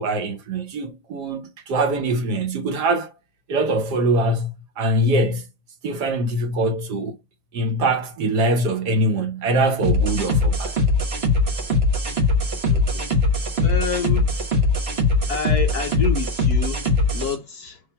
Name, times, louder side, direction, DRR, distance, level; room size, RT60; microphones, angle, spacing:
voice 1, 0.0-3.1 3.5-5.5 5.8-7.2 7.5-10.8, right 1 dB, 60° right, 1.4 m, -23 dB
sound 1, 9.8-17.3, left 2 dB, 35° right, 1.2 m, -21 dB
voice 2, 12.7-13.1 13.6-14.4 15.3-17.8, left 6 dB, 60° left, 1.1 m, -29 dB
6.7 x 2.6 x 5.5 m
omnidirectional pair, 2.2 m